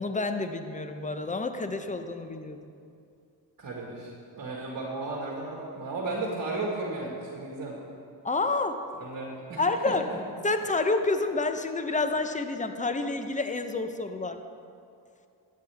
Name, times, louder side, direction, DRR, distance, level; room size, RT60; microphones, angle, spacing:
voice 1, 0.0-2.6 8.2-8.8 9.6-10.0 10.4-14.4, left 3 dB, 15° left, 8 dB, 0.7 m, -29 dB
voice 2, 3.6-7.8 9.0-10.2, right 2 dB, 50° right, -2 dB, 1.7 m, -34 dB
13.0 x 8.6 x 3.5 m, 2.5 s
cardioid pair, 65°, 45 cm